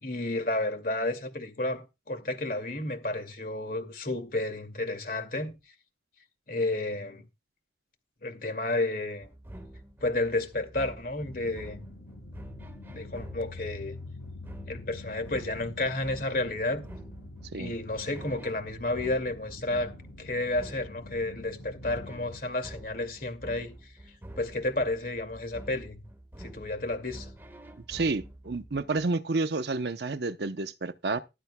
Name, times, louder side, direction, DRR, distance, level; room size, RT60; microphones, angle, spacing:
voice 1, 0.0-5.5 6.5-7.2 8.2-9.3 10.0-11.8 12.9-14.0 14.7-16.8 17.5-19.9 20.2-23.7 24.4-26.0 26.4-27.3, left 2 dB, 50° left, 2.3 m, -31 dB
sound 1, 9.2-29.1, right 1 dB, 10° right, 1.5 m, -47 dB
sound 2, 11.2-22.4, left 2 dB, 80° left, 2.9 m, -46 dB
voice 2, 27.8-31.2, right 3 dB, 65° right, 0.7 m, -30 dB
15.0 x 12.0 x 2.2 m
head